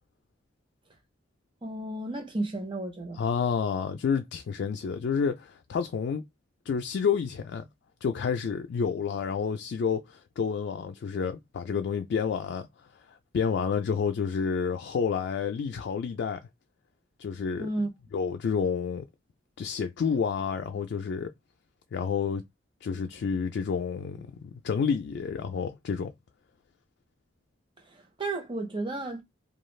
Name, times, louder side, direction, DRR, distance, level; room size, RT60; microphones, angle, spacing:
voice 1, 1.6-3.2 17.6-17.9 27.8-29.2, right 2 dB, 25° right, 0.7 m, -33 dB
voice 2, 3.2-6.2 6.7-7.7 8.0-12.7 13.1-16.4 17.2-17.7 18.1-19.0 19.6-21.3 21.9-22.4 22.8-26.1, left 6 dB, 65° left, 0.3 m, -29 dB
2.3 x 2.3 x 3.1 m
head